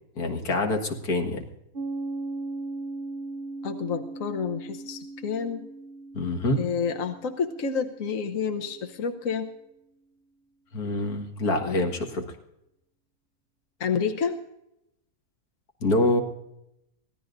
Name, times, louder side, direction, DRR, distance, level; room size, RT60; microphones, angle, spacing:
voice 1, 0.2-1.4 6.1-6.6 10.7-12.3 15.8-16.2, left 2 dB, 90° left, 3 dB, 2.2 m, -25 dB
Piano, 1.7-9.0, right 2 dB, 40° right, 1.1 m, -38 dB
voice 2, 3.6-5.7 6.6-9.5 11.6-11.8 13.8-14.4, left 6 dB, 65° left, 5 dB, 1.4 m, -29 dB
24.0 x 17.0 x 2.6 m, 0.83 s
omnidirectional pair, 1.6 m